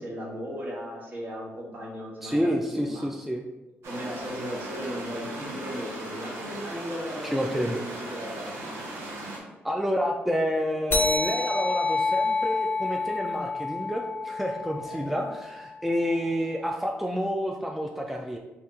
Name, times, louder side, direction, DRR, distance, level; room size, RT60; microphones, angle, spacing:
voice 1, 0.0-3.1 3.9-8.5 14.8-15.2, equal, 50° right, -3 dB, 1.2 m, -37 dB
voice 2, 2.2-3.4 7.2-7.8 9.6-18.4, equal, 5° right, 1 dB, 0.3 m, -29 dB
sound 1, 3.8-9.4, right 1 dB, 75° right, 0.9 m, -38 dB
sound 2, 10.9-15.8, left 3 dB, 50° left, 0.5 m, -29 dB
2.8 x 2.8 x 3.5 m, 1.0 s
cardioid pair, 70°, 4 cm